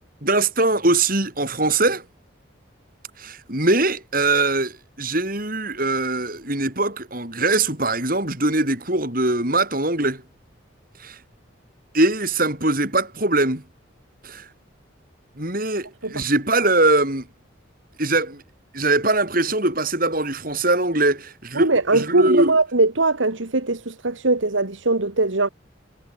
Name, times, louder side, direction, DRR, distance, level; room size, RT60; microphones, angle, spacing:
voice 1, 0.2-2.0 3.2-10.2 11.0-11.2 11.9-13.6 14.2-14.5 15.4-17.3 18.0-18.4 18.7-22.6, right 2 dB, 45° right, 6.5 m, -22 dB
voice 2, 21.6-25.5, right 2 dB, 70° right, 1.8 m, -21 dB
head